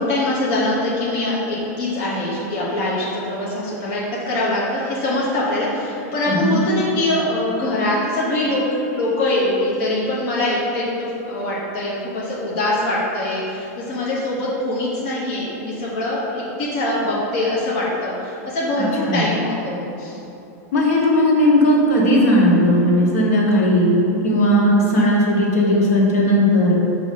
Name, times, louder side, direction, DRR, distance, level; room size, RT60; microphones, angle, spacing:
voice 1, 0.0-8.6 8.9-20.2, left 1 dB, 40° left, -7 dB, 1.1 m, -23 dB
voice 2, 18.8-19.2 20.7-23.9 24.2-26.8, equal, 65° left, -3 dB, 1.4 m, -16 dB
6.2 x 3.0 x 5.7 m, 2.9 s
supercardioid pair, 160°, 9 cm